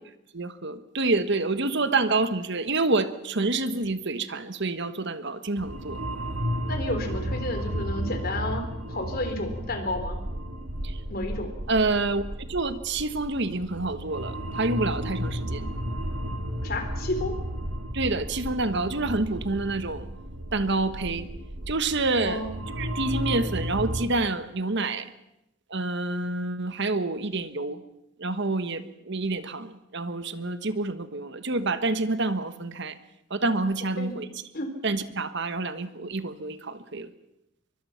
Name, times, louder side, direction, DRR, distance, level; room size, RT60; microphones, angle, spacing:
voice 1, 0.3-6.0 10.8-11.0 11.7-12.2 12.5-15.7 17.9-20.0 20.5-21.3 21.7-22.4 22.8-25.1 25.7-27.8 28.2-32.9 33.3-34.3 34.8-37.1, right 3 dB, 55° right, 11 dB, 1.4 m, -28 dB
sound 1, 5.6-24.1, equal, 90° right, 2.5 m, -33 dB
voice 2, 6.7-10.2 11.1-11.6 16.6-17.4 22.2-22.5 34.0-34.1 34.5-34.7, left 2 dB, 45° left, 6 dB, 3.6 m, -31 dB
23.5 x 23.5 x 5.8 m, 0.86 s
head